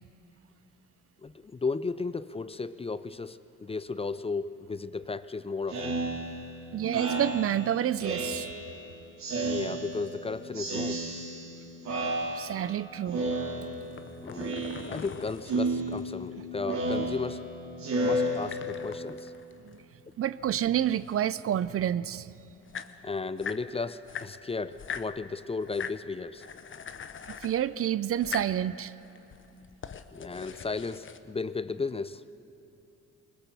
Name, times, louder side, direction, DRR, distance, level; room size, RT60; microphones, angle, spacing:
voice 1, 1.2-6.0 9.4-11.1 12.6-12.7 14.2-14.6 14.9-17.5 18.0-19.3 23.0-26.4 30.1-32.2, left 4 dB, 20° left, 14 dB, 0.5 m, -34 dB
Speech synthesizer, 5.7-8.8 9.2-10.2 10.5-11.6 11.8-12.8 13.1-14.0 14.3-15.1 15.4-19.0, right 1 dB, 65° right, 3.0 m, -32 dB
voice 2, 6.7-8.5 12.3-13.2 19.6-19.8 20.2-22.3 27.3-28.9, right 11 dB, 50° right, 17 dB, 0.5 m, -29 dB
sound 1, 13.8-16.3 18.1-20.2 20.5-21.7 22.3-22.4 22.6-23.7 24.0-25.1 25.6-26.0 26.4-27.6 28.1-28.6 29.1-31.2, left 7 dB, 40° left, 0.9 m, -42 dB
21.0 x 20.0 x 6.9 m, 2.9 s
cardioid pair, 90°, 30 cm